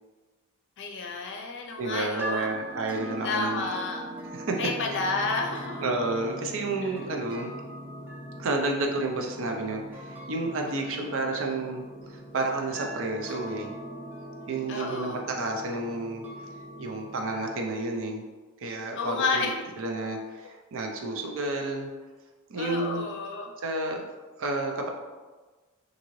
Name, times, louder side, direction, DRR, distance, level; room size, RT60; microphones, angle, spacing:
voice 1, 0.8-2.6 3.2-4.0 4.6-5.9 6.8-6.9 10.8-11.0 14.7-15.2 19.0-19.7 22.6-23.5, left 3 dB, 55° left, 2 dB, 0.5 m, -31 dB
voice 2, 1.8-3.6 4.3-4.6 4.9-5.0 5.8-7.5 8.4-13.7 14.5-16.3 16.8-18.2 18.6-19.4 19.8-21.9 22.5-23.0 23.6-24.0 24.4-24.9, right 2 dB, 65° right, 2 dB, 0.5 m, -31 dB
sound 1, 2.2-17.6, right 1 dB, 10° right, 0.6 m, -41 dB
3.7 x 2.6 x 3.1 m, 1.3 s
head